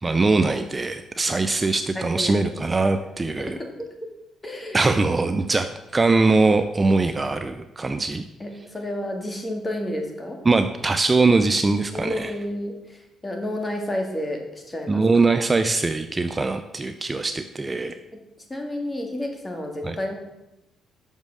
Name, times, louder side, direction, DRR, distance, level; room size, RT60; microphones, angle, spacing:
voice 1, 0.0-3.6 4.7-8.2 10.5-12.3 14.9-18.0 19.8-20.0, right 3 dB, 25° right, 9 dB, 0.4 m, -22 dB
voice 2, 2.0-2.4 3.4-3.9 4.4-4.9 8.4-10.4 11.9-15.0 18.5-20.1, left 1 dB, 20° left, 3 dB, 1.8 m, -31 dB
6.3 x 5.4 x 6.2 m, 0.93 s
cardioid pair, 90°, 0 cm